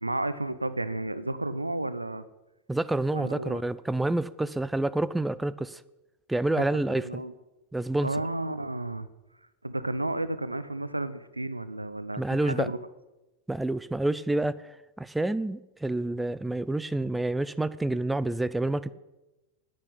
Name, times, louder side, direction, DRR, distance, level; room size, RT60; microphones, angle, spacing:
voice 1, 0.0-2.2 3.1-3.6 6.6-7.3 8.0-9.1 9.6-12.8, right 2 dB, 85° right, 14 dB, 0.7 m, -32 dB
voice 2, 2.7-5.8 6.3-7.2 7.7-8.1 12.2-12.7 13.5-18.9, right 2 dB, 5° right, 16 dB, 0.4 m, -28 dB
9.9 x 8.5 x 9.0 m, 1.0 s
figure-of-eight pair, 90°, 0 cm